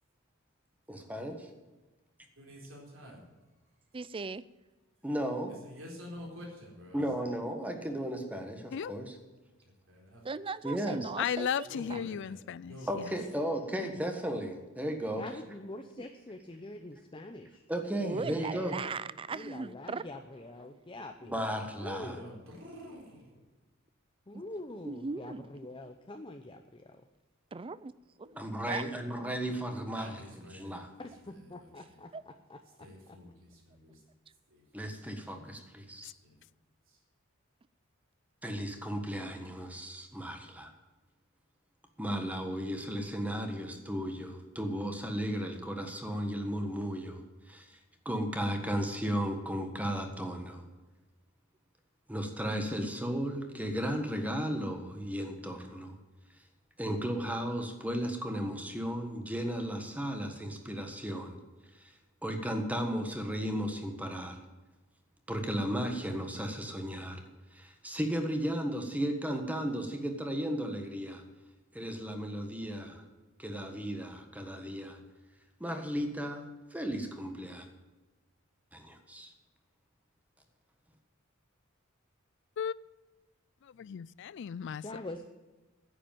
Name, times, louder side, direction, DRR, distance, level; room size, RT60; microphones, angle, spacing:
voice 1, 0.9-1.5 5.0-5.5 6.9-9.1 10.6-11.1 12.9-15.2 17.7-18.8 21.2-22.2 28.4-30.2 30.5-30.9 34.7-36.1 38.4-40.7 42.0-47.2 47.5-47.6 48.0-50.6 52.1-56.0 56.8-61.4 61.7-61.9 62.2-64.4 65.3-67.2 67.5-71.2 71.7-73.0 73.4-75.0 75.6-76.4 76.7-77.7 78.7-79.3, equal, 5° right, 1.4 m, -35 dB
voice 2, 2.4-3.3 5.5-7.1 9.6-10.2 11.7-12.4 12.7-13.2 21.8-23.4 29.9-30.8 31.2-32.0 32.8-34.0 34.5-34.9 35.2-35.3 36.2-36.4 36.9-37.0, left 1 dB, 70° right, 4.2 m, -49 dB
voice 3, 3.9-4.4 10.2-12.0 16.0-16.1 18.0-20.0 24.8-25.5 27.5-27.9 28.2-28.4 28.7-28.8 29.2-29.3 32.1-32.2, right 4 dB, 25° right, 0.4 m, -38 dB
voice 4, 11.2-13.1 36.0-36.1 82.6-82.7 83.8-84.8, left 8 dB, 60° left, 0.4 m, -35 dB
voice 5, 15.2-17.6 19.3-21.4 21.8-22.4 24.3-27.0 31.0-32.6 84.8-85.2, left 2 dB, 25° left, 0.7 m, -44 dB
10.0 x 8.1 x 9.1 m
head